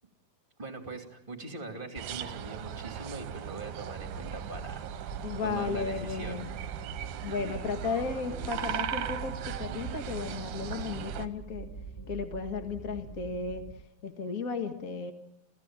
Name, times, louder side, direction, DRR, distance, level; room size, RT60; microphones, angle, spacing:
voice 1, 0.6-6.4, right 3 dB, 15° right, 4 dB, 2.3 m, -42 dB
sound 1, 2.0-11.3, right 9 dB, 65° right, 2.2 m, -38 dB
sound 2, 4.0-13.7, right 4 dB, 10° left, 1.4 m, -44 dB
voice 2, 5.2-6.5 7.2-11.7 12.1-13.7 14.0-15.1, left 5 dB, 45° left, 5 dB, 1.1 m, -34 dB
29.5 x 16.0 x 8.9 m, 0.91 s
omnidirectional pair, 4.3 m